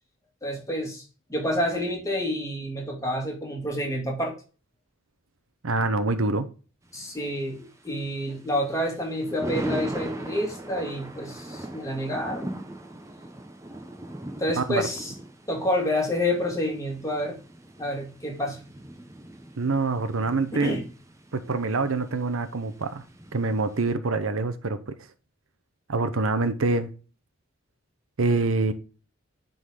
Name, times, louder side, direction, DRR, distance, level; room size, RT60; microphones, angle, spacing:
voice 1, 0.4-1.0 1.3-4.3 6.9-12.6 14.4-15.1 15.5-17.4 17.8-18.6 20.5-20.8, left 1 dB, 15° left, 2.2 m, -28 dB
voice 2, 5.6-6.5 14.6-14.8 19.6-20.8 21.3-23.0 23.3-24.8 25.9-26.9 28.2-28.7, right 3 dB, 80° right, 0.8 m, -25 dB
Thunder, 6.8-23.9, right 1 dB, 15° right, 0.9 m, -40 dB
9.8 x 4.0 x 5.0 m
head